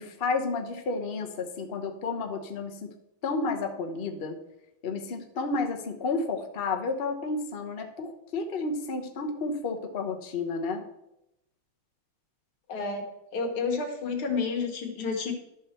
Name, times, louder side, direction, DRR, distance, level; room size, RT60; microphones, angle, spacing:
voice 1, 0.0-2.9 3.2-4.4 4.8-10.8, left 3 dB, 40° left, 4 dB, 0.9 m, -31 dB
voice 2, 12.7-13.0 13.3-15.3, left 4 dB, 85° left, 3 dB, 2.3 m, -30 dB
12.0 x 6.4 x 4.4 m, 0.85 s
omnidirectional pair, 2.3 m